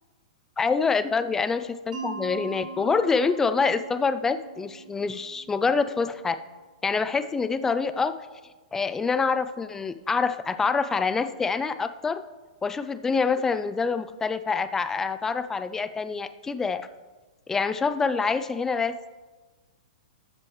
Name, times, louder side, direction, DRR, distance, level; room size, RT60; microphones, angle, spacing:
voice 1, 0.6-6.4 6.8-8.1 8.7-12.2 12.6-16.9 17.5-19.0, left 5 dB, 10° left, 12 dB, 0.3 m, -26 dB
Mallet percussion, 1.9-6.7, right 5 dB, 75° right, 2.9 m, -41 dB
13.5 x 7.5 x 3.1 m, 1.3 s
hypercardioid pair, 145°, 4 cm